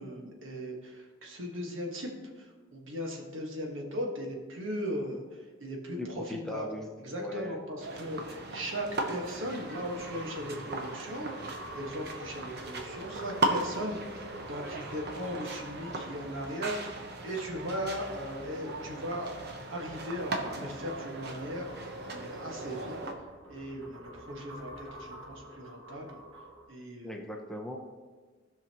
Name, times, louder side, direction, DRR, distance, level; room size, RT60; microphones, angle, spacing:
voice 1, 0.0-2.1 2.3-6.7 7.0-21.7 22.1-26.2 26.7-27.2, equal, 70° right, 1 dB, 1.6 m, -38 dB
voice 2, 6.0-6.9 7.2-7.6 27.0-27.8, left 1 dB, ahead, 1 dB, 0.7 m, -38 dB
sound 1, 7.2-17.8 19.8-26.7, right 1 dB, 85° right, 1.4 m, -49 dB
sound 2, 7.8-23.1, right 2 dB, 55° right, 1.0 m, -38 dB
sound 3, 11.6-25.5, left 1 dB, 40° left, 0.9 m, -57 dB
16.0 x 5.6 x 3.0 m, 1.4 s
head